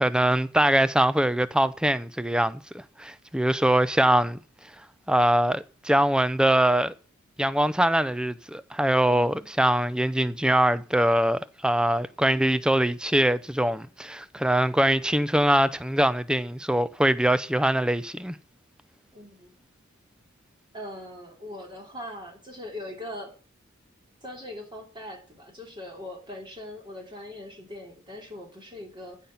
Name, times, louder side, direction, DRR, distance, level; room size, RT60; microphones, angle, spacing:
voice 1, 0.0-4.4 5.1-6.9 7.4-18.4, right 1 dB, 5° right, 0.6 m, -23 dB
voice 2, 9.0-9.5 19.1-19.5 20.7-23.3 24.2-29.2, left 1 dB, 25° right, 3.2 m, -41 dB
15.0 x 5.8 x 8.7 m
head